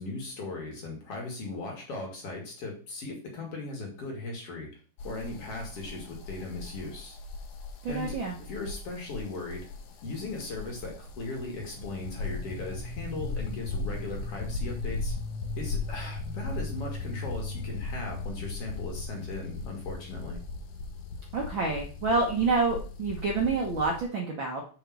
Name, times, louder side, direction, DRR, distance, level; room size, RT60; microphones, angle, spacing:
voice 1, 0.0-4.7 5.0-7.2 7.9-9.7 10.0-15.1 15.6-20.4, left 3 dB, 45° left, 0 dB, 2.7 m, -38 dB
sound 1, 5.0-24.0, left 3 dB, 70° left, 1.6 m, -37 dB
voice 2, 7.8-8.3 21.3-24.6, right 3 dB, 90° right, 0 dB, 1.0 m, -28 dB
5.6 x 5.2 x 6.2 m, 0.40 s
omnidirectional pair, 4.0 m